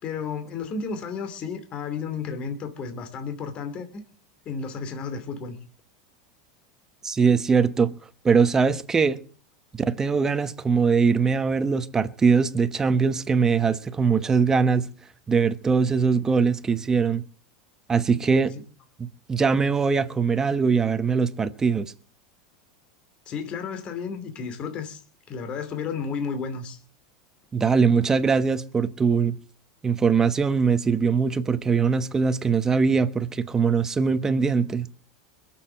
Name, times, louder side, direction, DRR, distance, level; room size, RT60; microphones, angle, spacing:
voice 1, 0.0-4.0 4.4-5.6 23.3-25.0 25.3-26.8, left 5 dB, 40° left, 2.8 m, -32 dB
voice 2, 7.0-7.9 8.2-9.2 9.7-14.9 15.3-17.3 17.9-18.5 19.0-21.9 27.5-29.4 29.8-34.9, right 5 dB, 20° right, 1.1 m, -22 dB
21.5 x 7.5 x 7.5 m
supercardioid pair, 115°, 3 cm